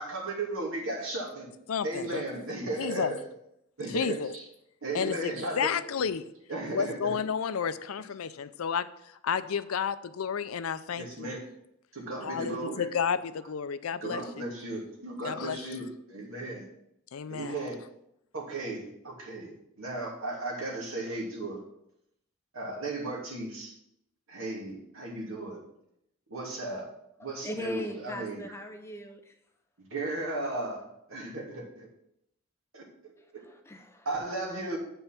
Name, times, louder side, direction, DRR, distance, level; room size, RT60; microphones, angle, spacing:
voice 1, 0.0-1.5 1.8-3.2 3.8-4.4 4.8-5.7 6.5-7.1 11.0-11.5 11.9-12.9 14.0-16.6 17.3-17.8 18.3-21.6 22.5-23.7 24.3-25.6 26.3-26.9 27.2-28.4 29.9-31.9 32.7-32.8 34.0-34.8, right 2 dB, 80° right, -2 dB, 2.7 m, -35 dB
voice 2, 1.7-2.2 2.8-3.1 3.9-4.3 4.9-6.3 6.7-8.9 9.2-11.4 12.2-14.5 15.2-15.8 17.1-17.6, left 7 dB, 85° left, 14 dB, 0.5 m, -31 dB
voice 3, 27.2-29.3 33.2-34.1, left 1 dB, 10° left, 5 dB, 0.7 m, -40 dB
8.0 x 5.6 x 5.9 m, 0.78 s
head